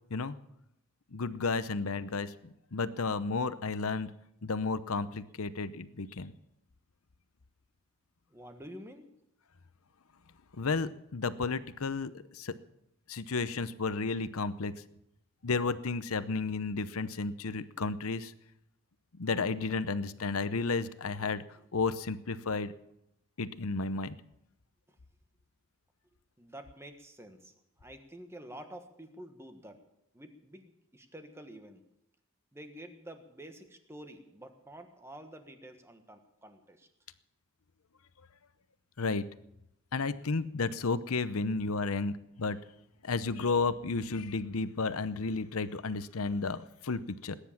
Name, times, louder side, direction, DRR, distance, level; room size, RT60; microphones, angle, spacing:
voice 1, 1.1-4.1 4.4-6.3 10.6-12.5 13.1-14.7 15.4-18.3 19.2-21.4 21.7-22.7 23.4-24.2 39.0-39.2 39.9-42.6 43.0-47.4, left 4 dB, 75° left, 14 dB, 0.8 m, -32 dB
voice 2, 8.3-9.1 24.9-25.0 26.4-29.8 30.1-31.8 32.5-36.9, right 1 dB, 10° right, 7 dB, 1.4 m, -49 dB
19.5 x 10.0 x 7.2 m, 0.81 s
head